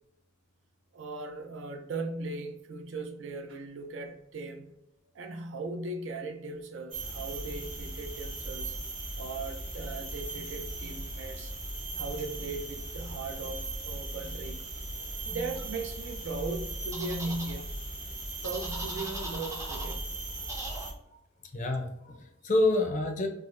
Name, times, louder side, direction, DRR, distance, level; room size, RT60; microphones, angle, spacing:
voice 1, 0.9-4.7 5.1-8.8 9.2-11.5 12.0-14.6 15.2-17.7 18.4-20.0, right 3 dB, 65° right, 0.5 m, -38 dB
sound 1, 6.9-20.9, right 2 dB, 40° right, 1.0 m, -38 dB
voice 2, 15.0-15.4 20.4-20.5 21.5-23.3, left 2 dB, 35° left, 0.5 m, -29 dB
sound 2, 16.9-17.5 18.4-20.0 20.5-20.9, right 1 dB, 15° right, 0.5 m, -40 dB
4.6 x 2.0 x 2.5 m
head